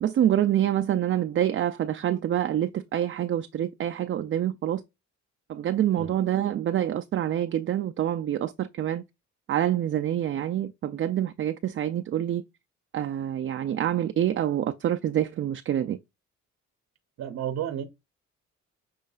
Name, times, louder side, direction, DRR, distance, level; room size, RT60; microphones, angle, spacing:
voice 1, 0.0-4.8 5.5-9.0 9.5-12.4 12.9-16.0, right 11 dB, 40° right, 0.4 m, -26 dB
voice 2, 17.2-17.9, right 10 dB, 60° right, 0.8 m, -32 dB
6.6 x 3.1 x 2.3 m
cardioid pair, 90°, 30 cm